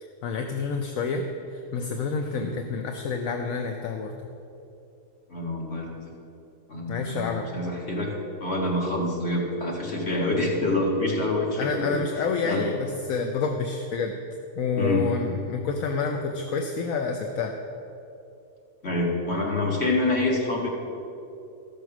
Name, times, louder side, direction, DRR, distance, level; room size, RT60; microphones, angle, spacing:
voice 1, 0.0-4.1 6.9-7.5 11.6-14.2 14.6-17.6, left 4 dB, 70° left, 4 dB, 1.1 m, -28 dB
voice 2, 5.3-6.1 6.7-8.1 8.4-12.0 12.4-12.6 14.8-15.0 18.8-20.7, left 2 dB, 45° left, -2 dB, 2.2 m, -26 dB
14.0 x 6.5 x 6.1 m, 2.7 s
omnidirectional pair, 1.5 m